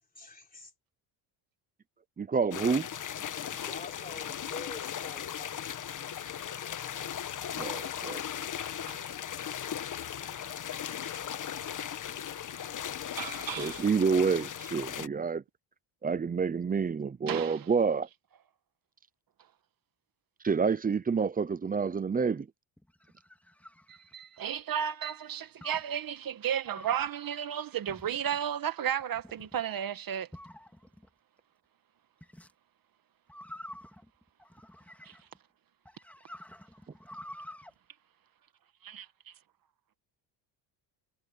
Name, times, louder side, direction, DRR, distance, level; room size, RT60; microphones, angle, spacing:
voice 1, 0.1-0.7 3.5-6.1, left 3 dB, 20° left, 3.6 m, -47 dB
voice 2, 2.2-2.9 7.6-8.2 13.6-15.4 16.0-18.1 20.4-22.5, right 5 dB, 20° right, 0.6 m, -28 dB
sound 1, 2.5-15.1, left 9 dB, 40° left, 1.5 m, -37 dB
voice 3, 13.2-13.8 17.3-17.7 23.9-30.3 35.1-35.2 38.8-39.1, right 9 dB, 45° right, 1.8 m, -33 dB
sound 2, 22.8-24.6 25.6-25.9 26.6-27.1 27.9-28.4 29.0-29.6 30.3-31.1 32.2-32.5 33.3-35.4 35.8-37.7, left 1 dB, 5° left, 2.5 m, -49 dB
cardioid pair, 125°, 46 cm